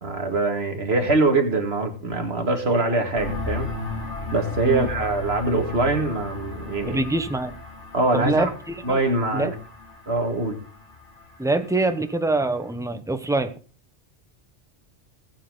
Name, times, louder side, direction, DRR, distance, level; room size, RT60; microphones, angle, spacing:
voice 1, 0.0-3.7 4.3-7.0 7.9-8.5 8.8-9.5 10.1-10.6, right 3 dB, 60° right, 4 dB, 2.4 m, -23 dB
sound 1, 3.2-12.7, left 3 dB, 75° left, 3.0 m, -36 dB
voice 2, 6.9-7.5 8.1-9.0 9.3-9.5 11.4-13.5, right 2 dB, 5° right, 9 dB, 0.8 m, -24 dB
19.0 x 7.5 x 3.9 m, 0.37 s
omnidirectional pair, 1.2 m